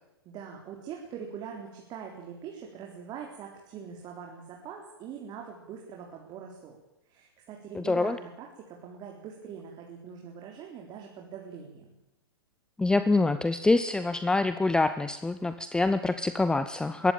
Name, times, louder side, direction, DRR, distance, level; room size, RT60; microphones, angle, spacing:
voice 1, 0.2-6.8 7.1-11.9, right 7 dB, 35° right, 0 dB, 4.0 m, -43 dB
voice 2, 7.8-8.1 12.8-17.1, left 3 dB, 5° left, 12 dB, 0.8 m, -25 dB
21.5 x 17.5 x 9.0 m, 0.98 s
hypercardioid pair, 110°, 13 cm